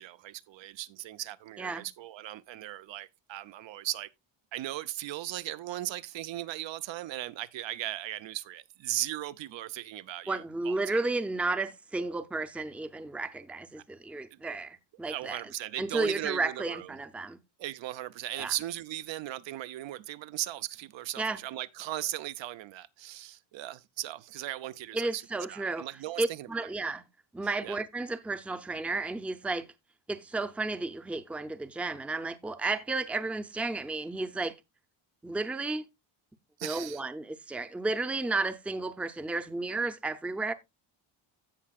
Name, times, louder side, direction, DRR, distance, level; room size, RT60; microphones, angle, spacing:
voice 1, 0.0-4.1 4.5-10.4 10.6-11.0 15.1-16.9 17.6-25.2 25.5-26.7 27.6-27.8 36.6-37.0, right 14 dB, 65° right, 0.6 m, -37 dB
voice 2, 10.3-15.5 15.8-17.4 18.4-18.5 21.2-21.4 24.9-25.9 26.2-27.0 27.3-29.7 30.1-34.5 35.2-35.8 36.6-40.5, right 3 dB, 5° right, 0.5 m, -33 dB
16.0 x 5.6 x 2.3 m
cardioid pair, 115°, 48 cm